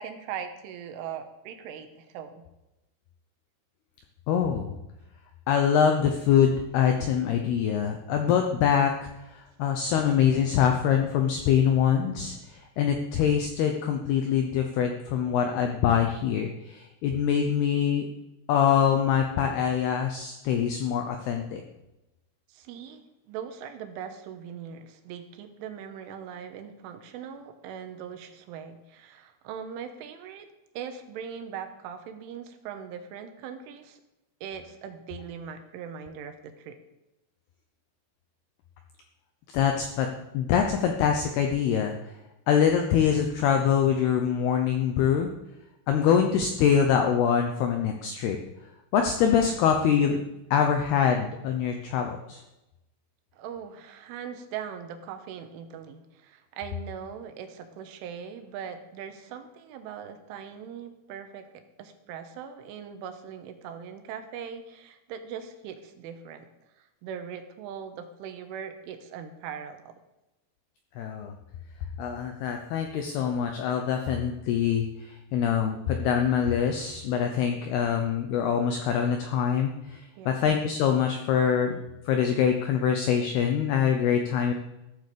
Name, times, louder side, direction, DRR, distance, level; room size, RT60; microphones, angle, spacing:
voice 1, 0.0-2.4 22.5-30.5 30.8-34.0 34.4-36.8 53.3-61.4 61.8-66.5 66.8-69.9 80.2-80.4, right 8 dB, 80° right, 7 dB, 3.5 m, -40 dB
voice 2, 4.3-4.8 5.5-18.1 18.5-21.6 39.5-40.1 40.3-41.9 42.5-45.3 45.9-48.4 48.9-50.2 50.5-52.4 71.0-71.3 72.0-81.8 82.1-84.5, left 8 dB, 80° left, 4 dB, 2.3 m, -24 dB
14.0 x 8.0 x 6.8 m, 0.95 s
omnidirectional pair, 5.8 m